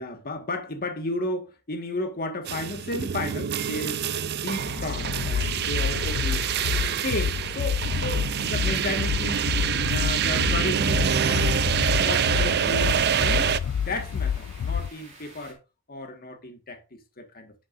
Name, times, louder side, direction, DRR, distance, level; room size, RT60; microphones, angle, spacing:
voice 1, 0.0-4.0 4.3-6.5 6.9-9.5 9.9-11.6 12.0-15.6 15.9-17.5, left 1 dB, 45° left, 1.6 m, -33 dB
sound 1, 2.4-13.6, right 8 dB, 50° right, 0.4 m, -26 dB
sound 2, 4.6-14.9, left 7 dB, 65° left, 0.3 m, -29 dB
sound 3, 8.6-15.5, right 3 dB, 30° right, 3.0 m, -49 dB
11.0 x 6.2 x 2.6 m
head